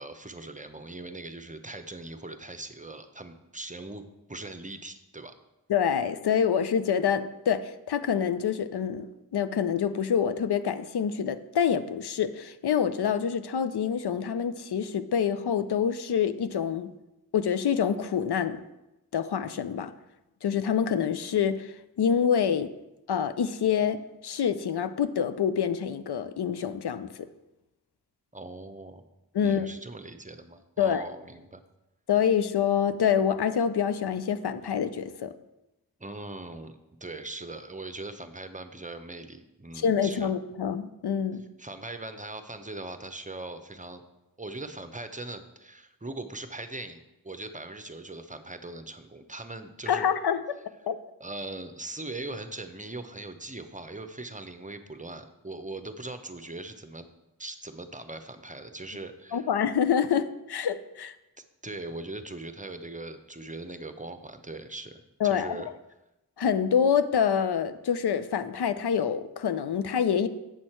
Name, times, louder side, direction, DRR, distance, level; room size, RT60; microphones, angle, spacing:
voice 1, 0.0-4.0 4.3-5.3 28.3-29.0 29.4-31.6 36.0-40.3 41.6-44.0 44.4-50.1 51.2-57.1 57.4-59.5 61.6-65.7, right 2 dB, 20° right, 9 dB, 0.7 m, -40 dB
voice 2, 5.7-9.1 9.3-16.9 17.3-18.6 19.1-19.9 20.4-22.7 23.1-27.3 29.3-29.7 30.8-31.1 32.1-35.3 39.7-41.4 49.9-50.4 50.9-51.0 59.3-61.2 65.2-65.6 66.4-70.3, left 8 dB, 90° left, 12 dB, 0.5 m, -26 dB
8.2 x 6.2 x 4.4 m, 0.95 s
wide cardioid pair, 50°, 38 cm